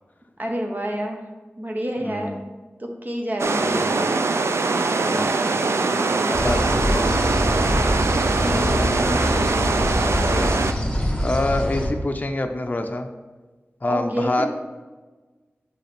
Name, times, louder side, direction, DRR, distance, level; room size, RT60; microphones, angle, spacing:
voice 1, 0.4-1.2 1.6-2.3 2.8-4.1 8.3-8.9 13.9-14.5, equal, 40° right, 2 dB, 1.0 m, -29 dB
voice 2, 2.0-2.4 3.6-3.9 4.9-5.3 5.5-7.6 8.4-10.5 11.2-13.1 13.8-14.5, left 2 dB, 35° left, 5 dB, 0.5 m, -28 dB
sound 1, 3.4-10.7, right 3 dB, 80° right, 0.4 m, -22 dB
sound 2, 6.3-11.9, left 1 dB, 20° left, 1.2 m, -24 dB
6.5 x 4.9 x 3.5 m, 1.3 s
wide cardioid pair, 70°, 4 cm